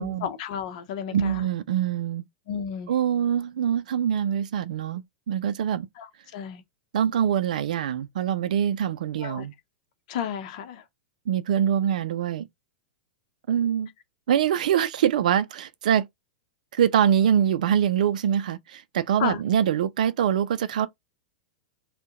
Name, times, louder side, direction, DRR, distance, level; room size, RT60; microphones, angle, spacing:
voice 1, 0.0-1.4 2.5-3.0 6.0-6.6 9.2-9.5 10.1-10.8 19.2-19.4, left 8 dB, 60° left, 0.7 m, -32 dB
voice 2, 1.1-2.2 2.9-5.0 5.3-5.9 6.9-9.5 11.3-12.4 13.5-13.9 14.3-16.1 16.7-20.9, right 9 dB, 70° right, 0.4 m, -24 dB
2.7 x 2.2 x 3.6 m
hypercardioid pair, 110°, 4 cm